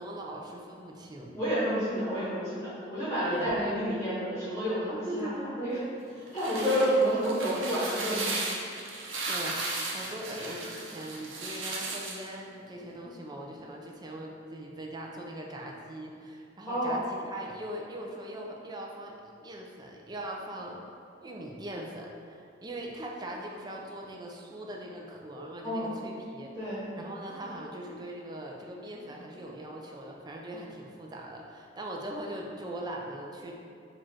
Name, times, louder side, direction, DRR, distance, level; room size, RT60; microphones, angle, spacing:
voice 1, 0.0-1.4 3.3-3.5 4.9-5.5 6.6-6.9 9.3-20.8 21.2-26.5 27.0-33.5, right 1 dB, 20° right, -1 dB, 0.4 m, -41 dB
voice 2, 1.3-5.3 5.6-5.8 6.1-8.5 16.7-17.0 25.6-25.9 26.5-26.8, equal, 15° left, -12 dB, 1.0 m, -29 dB
sound 1, 6.1-12.3, right 2 dB, 80° right, 0.7 m, -35 dB
4.6 x 2.4 x 4.2 m, 2.4 s
head